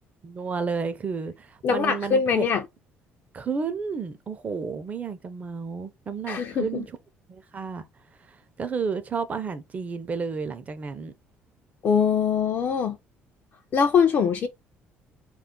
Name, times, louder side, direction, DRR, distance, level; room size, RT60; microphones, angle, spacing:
voice 1, 0.2-2.4 3.3-7.0 7.3-7.9 8.6-11.1, right 5 dB, 30° right, 0.5 m, -31 dB
voice 2, 1.6-2.6 6.3-6.8 11.8-13.0 13.7-14.5, left 6 dB, 50° left, 0.4 m, -22 dB
2.3 x 2.1 x 3.6 m
cardioid pair, 105°, 5 cm